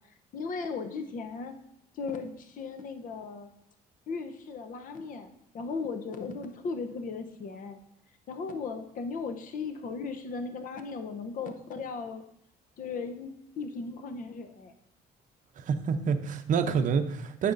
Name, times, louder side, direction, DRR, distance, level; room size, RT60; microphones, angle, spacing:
voice 1, 0.3-1.5 1.9-3.5 4.1-7.8 8.3-12.2 12.8-14.7, left 4 dB, 55° left, 7 dB, 0.8 m, -37 dB
voice 2, 15.6-17.5, right 6 dB, 50° right, 8 dB, 0.6 m, -27 dB
9.3 x 5.9 x 2.6 m, 0.74 s
cardioid pair, 110°, 17 cm